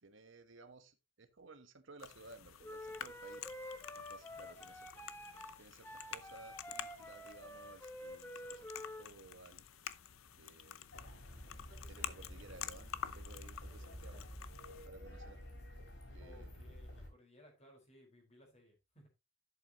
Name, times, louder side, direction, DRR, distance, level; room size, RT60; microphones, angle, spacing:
voice 1, 0.0-3.4 3.9-4.9 5.6-9.7 10.3-11.0 11.9-14.3 14.8-15.4 16.1-16.8, right 3 dB, 60° right, 1.2 m, -58 dB
sound 1, 2.0-14.9, left 9 dB, 85° left, 0.7 m, -49 dB
Wind instrument woodwind instrument, 2.6-9.1, left 1 dB, 10° left, 1.5 m, -49 dB
sound 2, 10.9-17.1, equal, 55° left, 4.9 m, -50 dB
voice 2, 16.2-19.1, left 1 dB, 30° left, 4.8 m, -62 dB
11.0 x 8.1 x 3.0 m
head